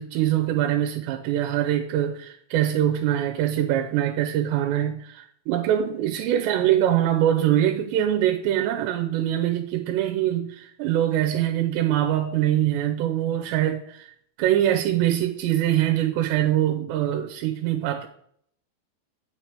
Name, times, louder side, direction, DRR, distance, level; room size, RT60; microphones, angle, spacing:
voice 1, 0.0-14.1 14.4-18.1, right 11 dB, 85° right, 2.8 m, -23 dB
9.0 x 5.8 x 4.9 m
omnidirectional pair, 5.1 m